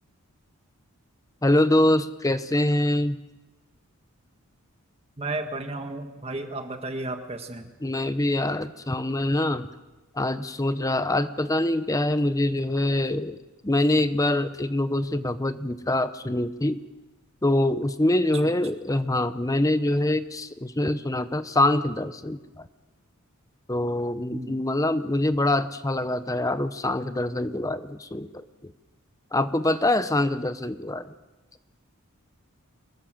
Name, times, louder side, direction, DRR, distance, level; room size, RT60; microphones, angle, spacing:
voice 1, 1.4-3.2 7.8-9.7 10.1-13.4 13.6-16.8 17.4-22.6 23.7-28.3 28.6-28.7 29.3-31.1, left 1 dB, 15° left, 12 dB, 0.7 m, -24 dB
voice 2, 5.2-7.7 18.4-18.5 24.3-24.6, right 2 dB, 25° right, 5 dB, 1.7 m, -33 dB
24.0 x 20.5 x 7.7 m, 1.1 s
head